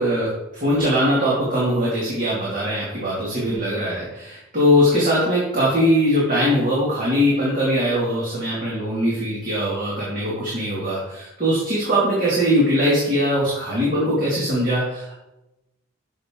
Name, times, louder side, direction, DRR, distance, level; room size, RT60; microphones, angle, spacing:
voice 1, 0.0-15.2, equal, 40° right, -6 dB, 2.4 m, -21 dB
12.5 x 6.6 x 3.8 m, 0.95 s
head